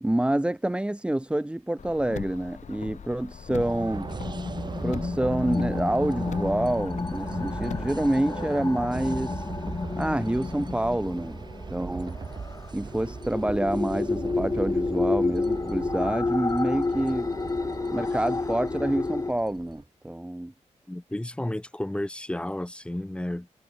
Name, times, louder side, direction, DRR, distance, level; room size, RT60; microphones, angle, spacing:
voice 1, 0.0-4.1 4.8-9.4 10.0-11.4 11.7-12.2 12.7-17.3 17.9-20.5, right 1 dB, 10° right, 2.3 m, -27 dB
Car, 1.8-8.1, left 7 dB, 75° left, 7.2 m, -40 dB
sound 1, 3.6-19.8, right 5 dB, 35° right, 1.1 m, -39 dB
sound 2, 3.8-19.3, left 3 dB, 25° left, 1.5 m, -31 dB
voice 2, 20.9-23.5, left 1 dB, 10° left, 2.8 m, -32 dB
wide cardioid pair, 160°, 12 cm